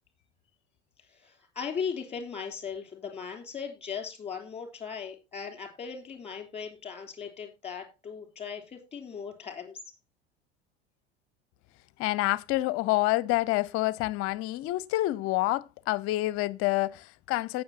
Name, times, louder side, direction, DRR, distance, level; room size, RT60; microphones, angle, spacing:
voice 1, 1.1-9.8, left 6 dB, 20° left, 3.2 m, -38 dB
voice 2, 12.0-17.6, left 18 dB, 45° left, 0.7 m, -28 dB
17.5 x 6.3 x 2.8 m
figure-of-eight pair, 75°, 33 cm